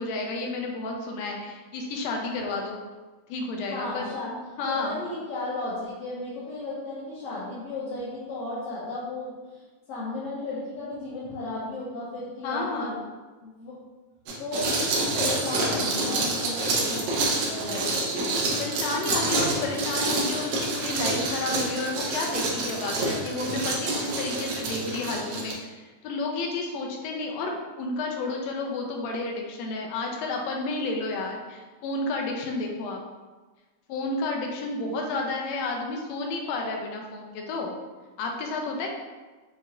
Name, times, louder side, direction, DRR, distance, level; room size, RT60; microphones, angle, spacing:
voice 1, 0.0-2.8 3.3-5.0 12.4-12.9 18.6-33.0 33.9-37.7 38.2-38.9, left 2 dB, 85° left, 1 dB, 1.5 m, -31 dB
voice 2, 3.7-4.3 4.7-13.0 13.4-13.8 14.4-17.0 17.5-18.0, left 2 dB, 70° left, -9 dB, 1.5 m, -34 dB
sound 1, 14.3-25.5, right 2 dB, 75° right, 1.9 m, -27 dB
5.6 x 2.9 x 2.3 m, 1.3 s
omnidirectional pair, 3.6 m